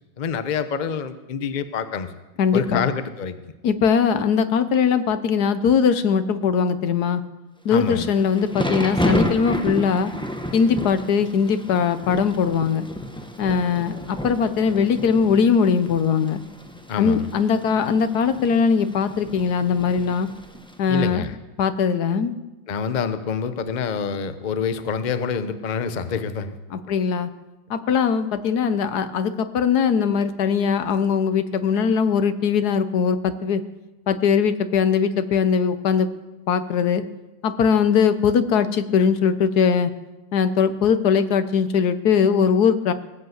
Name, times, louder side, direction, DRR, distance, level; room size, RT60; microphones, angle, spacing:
voice 1, 0.2-2.1 2.5-3.4 7.7-8.1 16.9-17.3 20.9-21.4 22.7-26.6, left 6 dB, 80° left, 11 dB, 0.4 m, -26 dB
voice 2, 2.4-2.8 3.6-7.2 7.6-10.1 10.5-12.9 13.4-16.4 17.0-20.3 20.8-21.2 21.6-22.3 26.7-27.3 27.7-33.6 34.1-36.1 36.5-37.0 37.4-39.9 40.3-42.9, left 6 dB, 60° left, 11 dB, 1.3 m, -20 dB
Thunder / Rain, 7.8-20.9, equal, 5° left, 0.5 m, -31 dB
18.5 x 8.1 x 7.9 m, 1.1 s
omnidirectional pair, 2.1 m